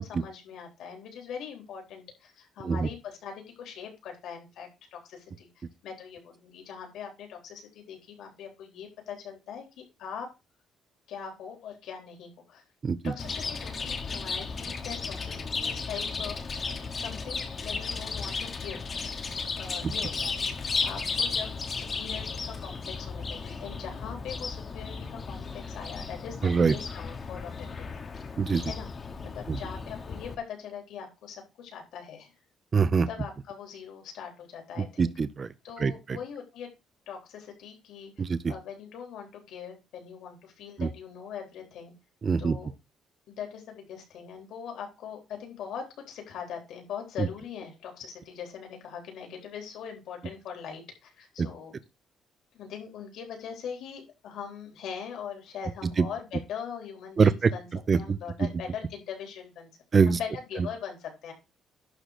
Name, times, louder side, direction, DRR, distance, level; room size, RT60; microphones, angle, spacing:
voice 1, 0.0-10.3 11.1-12.6 13.0-16.4 17.0-18.8 19.6-20.3 20.8-28.0 28.7-28.9 29.2-32.3 33.1-35.1 35.6-36.7 37.1-41.9 42.4-42.7 43.3-51.8 52.5-57.7 57.9-59.7 60.1-61.3, left 7 dB, 75° left, 3.9 m, -41 dB
Chirp tweet, 13.2-30.3, left 4 dB, 30° left, 1.2 m, -34 dB
voice 2, 26.4-26.7 28.4-28.7 29.5-29.6 32.7-33.1 34.8-35.5 35.8-36.2 38.2-38.5 40.8-40.9 42.2-42.6 47.2-47.3 51.4-51.5 56.0-56.1 57.2-57.5 57.9-58.5 59.9-60.2, right 5 dB, 25° right, 0.6 m, -24 dB
11.5 x 3.9 x 6.5 m
cardioid pair, 175°, 0 cm